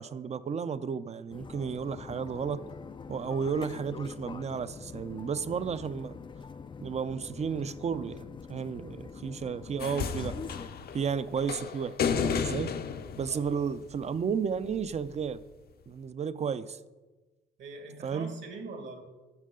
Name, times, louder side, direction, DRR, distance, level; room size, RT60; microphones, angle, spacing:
voice 1, 0.0-2.6 3.1-6.2 6.8-10.4 10.9-12.7 13.2-15.4 15.9-16.8 18.0-18.3, right 6 dB, 35° right, 15 dB, 0.5 m, -33 dB
sound 1, 1.3-10.7, left 5 dB, 25° left, 0.4 m, -44 dB
sound 2, 9.8-14.2 15.3-15.4, left 6 dB, 50° left, 0.7 m, -33 dB
voice 2, 13.3-13.6 17.6-19.0, right 3 dB, 65° right, 4 dB, 1.8 m, -43 dB
12.0 x 6.5 x 3.8 m, 1.2 s
cardioid pair, 90°, 20 cm